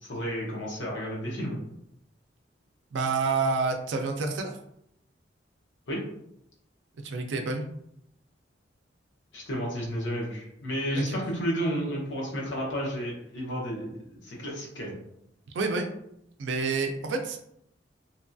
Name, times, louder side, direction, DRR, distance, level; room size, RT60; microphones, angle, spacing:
voice 1, 0.0-1.6 5.9-6.0 9.3-15.0, equal, 80° left, -3 dB, 0.9 m, -32 dB
voice 2, 2.9-4.6 7.0-7.6 10.9-11.2 15.5-15.9 16.4-17.5, right 4 dB, 70° right, 3 dB, 0.4 m, -28 dB
2.8 x 2.5 x 2.3 m, 0.75 s
head